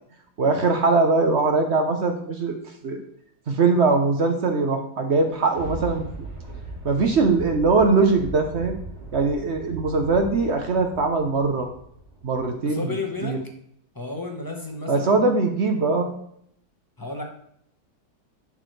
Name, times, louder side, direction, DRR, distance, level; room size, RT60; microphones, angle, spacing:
voice 1, 0.4-2.6 2.8-3.0 3.5-6.3 6.8-8.8 9.1-11.7 12.2-13.0 13.2-13.4 14.9-16.1, right 3 dB, 50° right, 5 dB, 0.8 m, -21 dB
Thunder, 5.5-12.6 13.1-13.2, right 2 dB, 65° right, 3.1 m, -38 dB
voice 2, 12.6-13.4 13.9-15.2 17.0-17.2, left 3 dB, 15° left, 1 dB, 0.8 m, -32 dB
11.0 x 4.6 x 3.2 m, 0.68 s
omnidirectional pair, 1.9 m